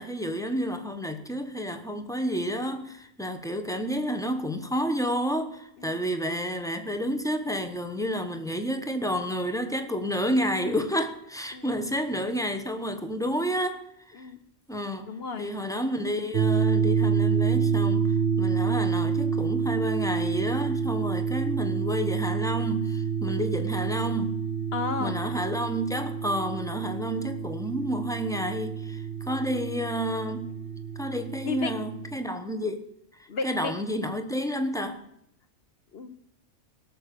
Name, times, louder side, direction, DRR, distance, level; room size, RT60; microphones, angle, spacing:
voice 1, 0.0-14.3 14.7-15.1 15.4-24.4 25.0-30.5 31.0-32.8 33.4-35.0, equal, 5° left, 0.8 m, -30 dB
voice 2, 15.0-15.5 24.7-25.4 31.4-31.7 33.3-33.7 35.9-36.1, left 4 dB, 55° left, 1.1 m, -33 dB
sound 1, 16.3-32.2, right 6 dB, 60° right, 0.8 m, -28 dB
17.5 x 6.7 x 6.7 m
omnidirectional pair, 1.3 m